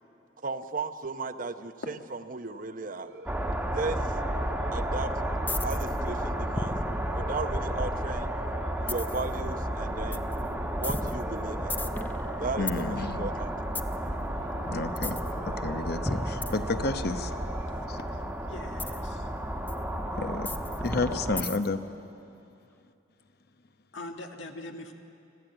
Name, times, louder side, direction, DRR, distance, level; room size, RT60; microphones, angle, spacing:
voice 1, 0.4-3.1 3.7-4.1 4.7-5.1 5.6-6.8 7.1-8.4 8.8-10.2 10.8-11.8 12.4-13.5, right 3 dB, 45° right, 10 dB, 0.8 m, -35 dB
sound 1, 3.0-19.4, right 2 dB, 75° right, 2.4 m, -46 dB
sound 2, 3.3-21.4, right 1 dB, 10° right, 1.3 m, -32 dB
sound 3, 5.5-6.0 6.5-8.1 8.9-9.3 10.1-10.3 10.8-12.8 13.7-14.0 15.0-15.3 16.1-17.2 18.8-19.0 19.7-19.8 20.4-21.8, left 2 dB, 10° left, 0.6 m, -35 dB
voice 2, 12.6-13.2 14.7-15.2 15.5-17.3 20.2-20.5 20.8-21.8, left 3 dB, 55° left, 9 dB, 0.9 m, -30 dB
voice 3, 18.5-19.3 21.1-21.2 23.9-24.9, left 2 dB, 80° left, 4 dB, 1.7 m, -41 dB
25.5 x 15.0 x 9.0 m, 2.6 s
head